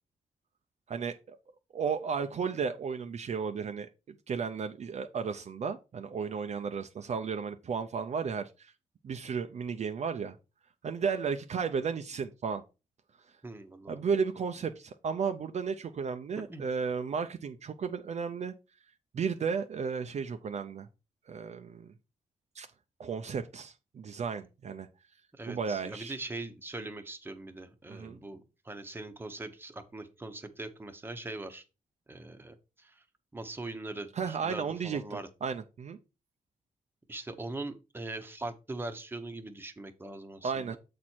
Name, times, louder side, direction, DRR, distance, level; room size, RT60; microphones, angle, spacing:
voice 1, 0.9-1.4 1.7-3.9 4.3-8.7 9.0-10.4 10.8-12.6 13.9-18.5 19.1-20.9 21.3-21.9 22.5-22.7 23.0-24.9 25.5-26.1 27.9-28.2 34.2-36.0 40.4-40.8, right 6 dB, 50° right, 7 dB, 0.5 m, -34 dB
voice 2, 13.4-14.0 16.5-16.6 25.3-31.6 32.1-33.0 33.3-35.3 37.1-40.8, right 2 dB, 15° right, 6 dB, 0.9 m, -41 dB
7.4 x 4.3 x 4.4 m, 0.30 s
cardioid pair, 110°, 14 cm